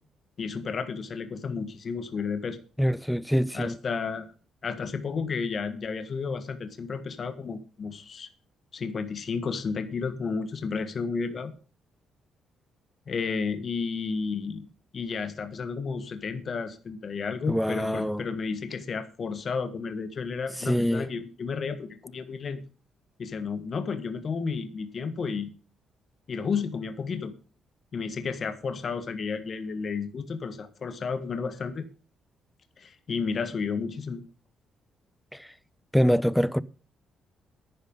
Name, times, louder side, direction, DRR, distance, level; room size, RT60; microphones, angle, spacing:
voice 1, 0.4-2.6 3.5-4.3 4.6-8.3 8.7-11.5 13.1-14.7 14.9-22.6 23.2-25.5 26.3-27.3 27.9-31.8 32.8-34.2, left 5 dB, 45° left, 1.6 m, -32 dB
voice 2, 2.8-3.8 17.5-18.2 20.6-21.1 35.3-35.5 35.9-36.6, equal, ahead, 0.6 m, -24 dB
10.5 x 9.6 x 5.5 m
cardioid pair, 90°, 0 cm